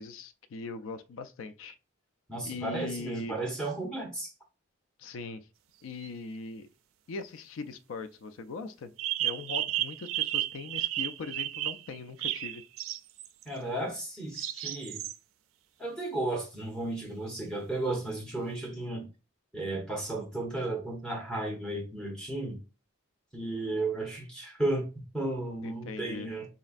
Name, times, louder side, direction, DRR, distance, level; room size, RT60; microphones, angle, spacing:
voice 1, 0.0-1.8 2.4-3.5 5.0-5.5 5.8-6.7 7.1-8.9 9.2-12.6 25.6-26.3, left 4 dB, 80° left, 0.4 m, -40 dB
voice 2, 2.3-4.3 13.4-15.0 15.8-19.0 19.5-22.6 23.3-26.5, right 2 dB, 5° left, 1.0 m, -34 dB
sound 1, 6.0-6.1 9.0-13.4 14.3-15.1, right 14 dB, 85° right, 0.3 m, -33 dB
3.9 x 3.2 x 2.5 m
head